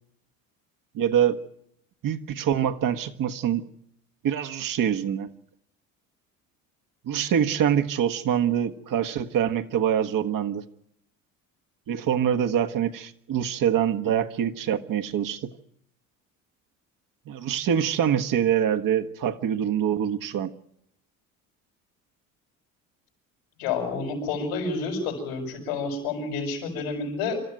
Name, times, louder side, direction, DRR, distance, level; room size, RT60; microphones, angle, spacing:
voice 1, 0.9-1.4 2.0-3.7 4.2-5.3 7.0-10.6 11.9-15.5 17.3-20.5, right 9 dB, 55° right, 1.5 m, -25 dB
voice 2, 23.6-27.4, left 4 dB, 85° left, 6.7 m, -29 dB
27.0 x 13.0 x 9.2 m
hypercardioid pair, 70°, 40 cm